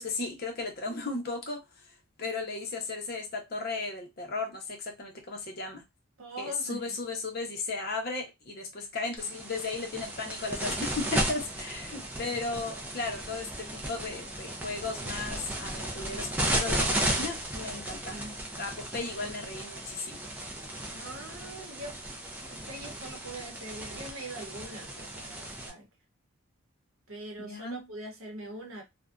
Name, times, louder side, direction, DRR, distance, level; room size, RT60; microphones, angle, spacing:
voice 1, 0.0-1.6 2.2-5.8 6.4-18.2 18.6-20.2 27.4-27.9, left 3 dB, 45° left, 0.7 m, -35 dB
voice 2, 6.2-7.0 18.1-18.4 20.9-22.0 22.5-25.8 27.1-28.8, right 1 dB, 70° right, 0.8 m, -42 dB
sound 1, 9.2-25.7, right 1 dB, 5° right, 0.3 m, -35 dB
2.5 x 2.1 x 2.3 m
head